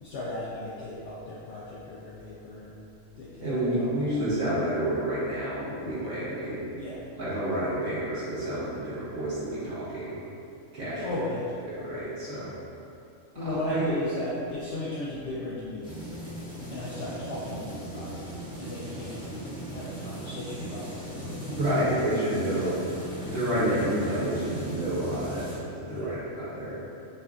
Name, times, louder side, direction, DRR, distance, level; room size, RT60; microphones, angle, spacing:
voice 1, 0.0-2.9 3.2-4.4 6.7-7.1 11.0-11.5 13.4-15.9 16.7-18.3 18.6-19.2 19.7-21.5 22.6-22.8 25.9-26.2, left 2 dB, 70° left, -7 dB, 0.8 m, -36 dB
voice 2, 3.4-6.6 7.2-10.2 10.7-11.0 11.8-12.5 13.4-13.9 21.5-22.7 23.2-25.5 25.7-26.8, right 1 dB, 70° right, -13 dB, 1.9 m, -29 dB
sound 1, 15.8-25.6, right 1 dB, 5° right, 0.6 m, -38 dB
5.5 x 2.5 x 2.4 m, 2.7 s
omnidirectional pair, 1.3 m